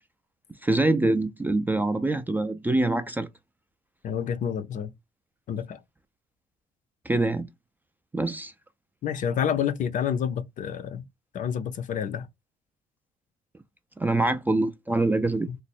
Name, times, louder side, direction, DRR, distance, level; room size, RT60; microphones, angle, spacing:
voice 1, 0.6-3.3 7.1-7.5 8.1-8.5 14.0-15.5, right 2 dB, 10° right, 0.3 m, -24 dB
voice 2, 4.0-4.9 5.5-5.8 9.0-11.0 11.3-12.3 15.5-15.6, left 8 dB, 50° left, 0.5 m, -29 dB
3.2 x 2.0 x 4.2 m
cardioid pair, 110°, 17 cm